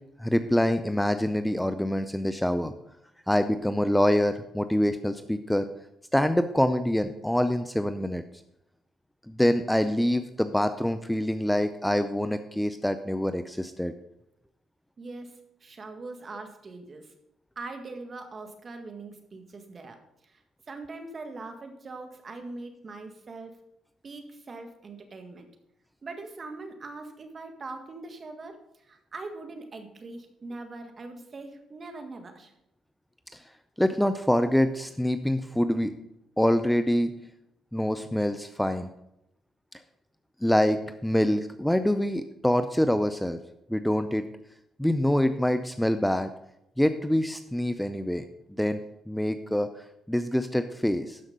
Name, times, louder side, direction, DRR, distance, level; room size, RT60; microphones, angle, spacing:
voice 1, 0.2-2.7 3.3-5.7 6.1-8.2 9.3-13.9 33.3-33.4 33.8-35.9 36.4-37.1 37.7-38.9 40.4-43.4 43.7-44.3 44.8-46.3 46.8-48.3 48.6-48.8 49.1-49.7 50.1-51.2, left 1 dB, 5° left, 10 dB, 0.5 m, -25 dB
voice 2, 15.0-17.1 17.6-20.0 20.2-20.4 20.7-23.5 24.0-25.5 26.0-28.6 28.9-32.5, right 3 dB, 40° right, 6 dB, 1.7 m, -41 dB
12.5 x 5.8 x 5.3 m, 0.83 s
cardioid pair, 90°, 0 cm